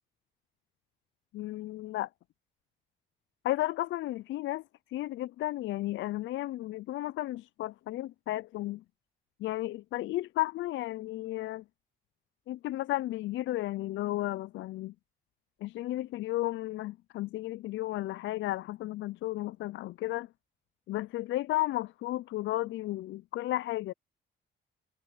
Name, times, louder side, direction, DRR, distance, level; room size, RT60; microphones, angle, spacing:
voice 1, 1.3-2.1 3.4-4.6 4.9-8.8 9.4-11.6 12.5-14.9 15.6-20.3 20.9-23.9, left 16 dB, 70° left, 0.4 m, -33 dB
cardioid pair, 90°, 20 cm